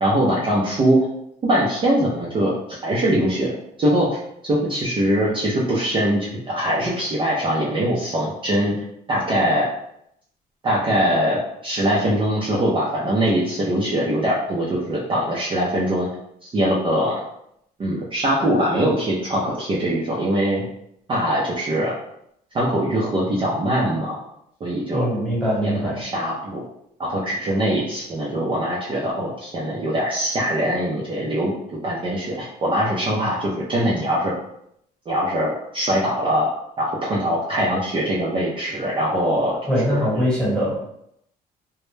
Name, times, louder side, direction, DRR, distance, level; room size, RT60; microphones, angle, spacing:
voice 1, 0.0-1.0 1.4-3.5 3.8-4.1 4.4-8.7 9.1-9.7 10.6-16.1 16.4-17.1 17.8-20.6 21.1-21.9 22.5-24.2 24.6-25.1 25.6-26.6 27.0-31.5 31.8-34.3 35.1-36.5 36.8-39.6 39.9-40.2, right 1 dB, 30° right, -6 dB, 0.5 m, -22 dB
voice 2, 24.9-26.0 39.7-40.8, equal, 5° left, -7 dB, 1.3 m, -22 dB
2.1 x 2.1 x 3.1 m, 0.75 s
cardioid pair, 110°, 17 cm